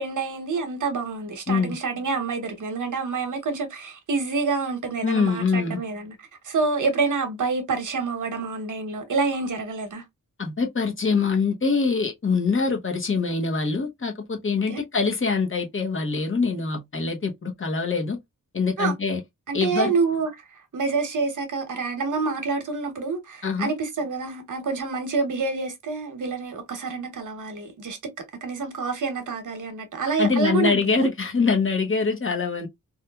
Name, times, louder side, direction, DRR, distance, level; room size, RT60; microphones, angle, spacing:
voice 1, 0.0-6.2 6.4-10.0 14.7-14.8 18.8-18.9 19.5-20.3 20.7-28.0 28.4-31.0, right 4 dB, 65° right, 0.9 m, -27 dB
voice 2, 5.0-5.8 10.4-18.2 18.5-19.2 19.5-19.9 23.4-23.7 30.2-32.7, left 4 dB, 40° left, 0.8 m, -24 dB
3.0 x 2.3 x 2.2 m
wide cardioid pair, 105°, 33 cm